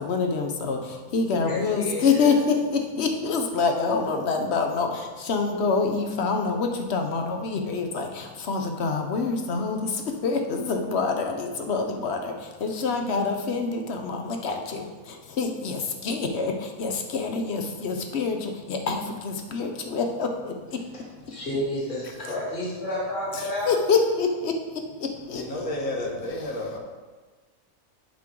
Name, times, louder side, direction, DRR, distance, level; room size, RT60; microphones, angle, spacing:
voice 1, 0.0-20.8 23.3-26.1, left 4 dB, 55° left, 4 dB, 0.9 m, -26 dB
voice 2, 1.3-2.3 21.3-23.7, left 1 dB, 35° left, -7 dB, 2.1 m, -30 dB
voice 3, 25.3-26.8, left 1 dB, 75° left, -1 dB, 1.7 m, -31 dB
7.5 x 6.2 x 3.7 m, 1.3 s
omnidirectional pair, 1.5 m